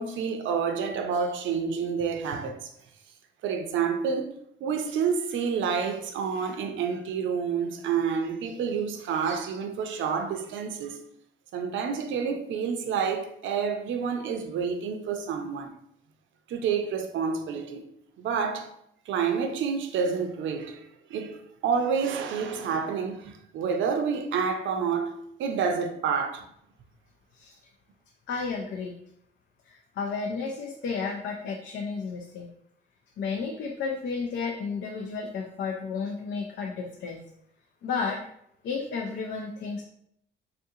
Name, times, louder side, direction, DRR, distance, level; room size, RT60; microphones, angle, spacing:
voice 1, 0.0-2.7 3.4-4.3 4.6-11.0 11.5-15.7 16.5-17.8 18.2-18.7 19.1-26.4, right 6 dB, 75° right, 0.5 m, -29 dB
voice 2, 28.3-29.0 29.7-32.5 33.2-37.2 37.8-38.2 38.6-39.8, left 5 dB, 65° left, 0.5 m, -32 dB
3.7 x 2.5 x 2.7 m
cardioid pair, 90°, 20 cm